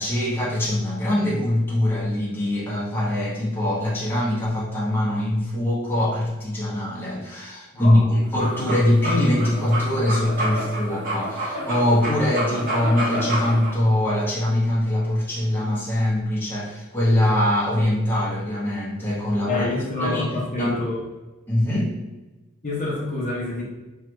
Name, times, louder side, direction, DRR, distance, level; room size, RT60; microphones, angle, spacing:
voice 1, 0.0-19.6 20.0-20.3 20.6-20.8 21.5-21.9, left 1 dB, 10° left, -8 dB, 1.0 m, -22 dB
voice 2, 7.7-8.2 19.4-21.0 22.6-23.6, left 2 dB, 35° left, -5 dB, 0.6 m, -27 dB
sound 1, 8.2-13.7, right 1 dB, 40° right, 1.0 m, -28 dB
3.3 x 2.3 x 3.0 m, 1.1 s
head